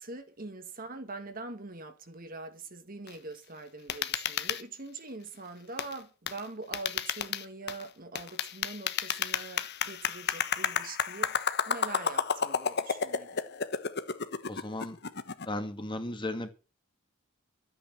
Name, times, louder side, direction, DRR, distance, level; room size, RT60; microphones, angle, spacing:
voice 1, 0.0-11.4 11.7-13.4, right 3 dB, 45° right, 2.1 m, -43 dB
sound 1, 3.1-3.2 3.9-4.6 5.8-6.0 6.3-6.4 6.7-7.8 8.2-15.5, left 7 dB, 55° left, 1.2 m, -32 dB
voice 2, 14.5-15.0 15.5-16.5, left 1 dB, 25° left, 2.0 m, -35 dB
13.5 x 8.9 x 7.6 m
head